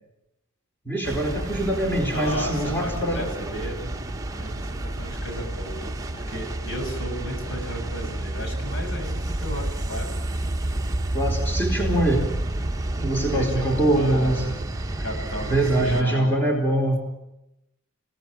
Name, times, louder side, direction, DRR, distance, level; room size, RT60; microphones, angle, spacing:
voice 1, 0.8-3.2 11.1-12.3 13.0-14.4 15.5-17.1, right 1 dB, 10° left, 2 dB, 4.4 m, -23 dB
sound 1, 1.0-16.0, right 1 dB, 15° right, 1.2 m, -30 dB
voice 2, 2.1-3.9 4.3-10.1 13.3-14.6 15.0-16.4, equal, 65° left, 3 dB, 7.4 m, -34 dB
28.0 x 17.5 x 9.0 m, 0.90 s
head